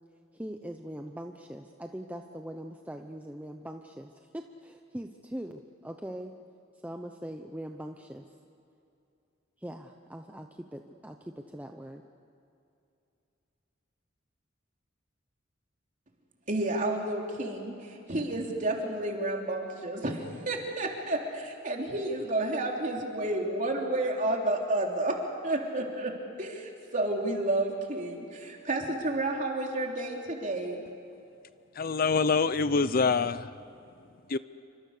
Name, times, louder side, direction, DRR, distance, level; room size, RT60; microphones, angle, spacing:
voice 1, 0.3-6.3 6.8-8.2 9.6-12.0, equal, 10° right, 4 dB, 0.8 m, -41 dB
voice 2, 16.5-25.2 25.4-26.1 26.4-30.8, right 2 dB, 40° right, 1 dB, 3.5 m, -31 dB
voice 3, 31.7-34.4, left 4 dB, 50° left, 14 dB, 0.6 m, -27 dB
28.5 x 25.5 x 6.7 m, 2.6 s
head